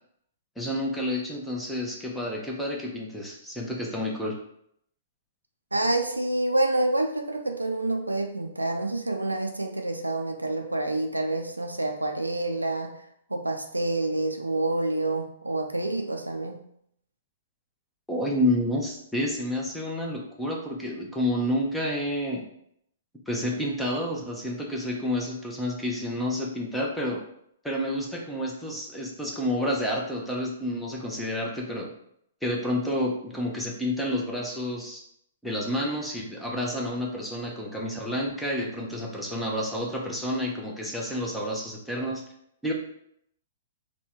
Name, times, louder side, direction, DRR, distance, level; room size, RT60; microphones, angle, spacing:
voice 1, 0.6-4.4 18.1-22.5 23.3-27.2 27.6-31.9 32.4-35.0 35.4-42.2 42.6-42.7, left 1 dB, 5° left, -2 dB, 0.7 m, -29 dB
voice 2, 5.7-12.9 13.3-16.6, right 2 dB, 90° right, 4 dB, 0.4 m, -27 dB
3.4 x 2.2 x 4.3 m, 0.72 s
figure-of-eight pair, 115°, 0 cm